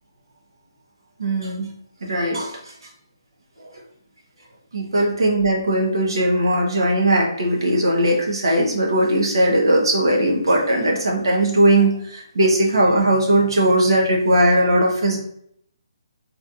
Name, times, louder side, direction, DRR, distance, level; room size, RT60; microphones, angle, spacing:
voice 1, 1.2-1.7 2.0-2.6 3.6-3.7 4.7-15.2, right 1 dB, 85° right, 0 dB, 1.1 m, -19 dB
4.0 x 3.2 x 2.5 m, 0.69 s
hypercardioid pair, 180°, 2 cm